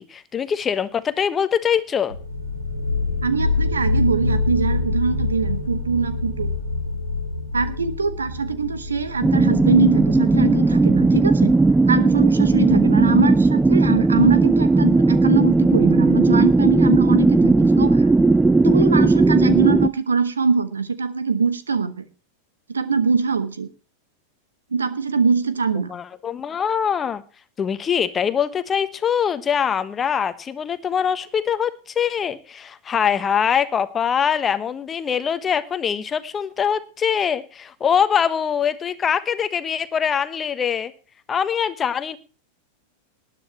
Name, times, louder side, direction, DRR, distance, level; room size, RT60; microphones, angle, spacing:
voice 1, 0.0-2.2 25.9-27.2 27.6-40.9 41.3-42.2, left 7 dB, 20° left, 12 dB, 1.3 m, -23 dB
sound 1, 2.1-13.5, left 3 dB, 90° right, 3.1 m, -27 dB
voice 2, 3.2-6.5 7.5-11.5 11.9-18.1 18.6-22.0 22.7-23.7 24.7-25.9, right 5 dB, 75° right, 13 dB, 1.3 m, -22 dB
sound 2, 9.2-19.9, right 3 dB, 10° right, 0.5 m, -16 dB
20.0 x 10.5 x 3.0 m, 0.36 s
figure-of-eight pair, 90°, 0 cm